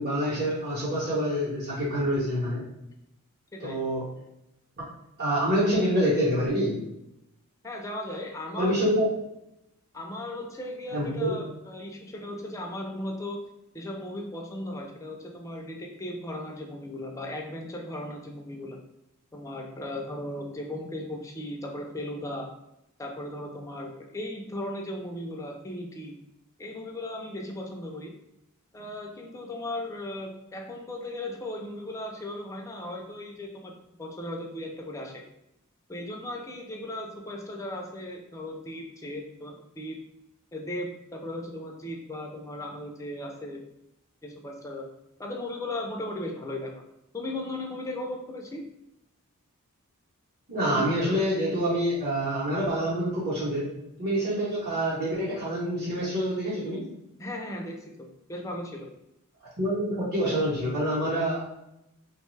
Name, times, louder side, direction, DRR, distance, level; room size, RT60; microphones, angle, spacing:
voice 1, 0.0-2.6 3.6-4.0 5.2-6.8 8.6-9.1 10.9-11.3 50.5-53.7 54.0-56.8 59.6-61.4, equal, 45° right, -10 dB, 0.9 m, -26 dB
voice 2, 7.6-9.0 9.9-13.4 13.7-18.8 19.3-22.5 23.0-26.2 26.6-28.1 28.7-35.1 35.9-40.0 40.5-43.6 44.2-44.9 45.2-46.7 47.1-48.6 50.7-50.8 57.2-58.9, left 1 dB, 15° left, 1 dB, 0.4 m, -37 dB
2.9 x 2.2 x 3.1 m, 0.85 s
head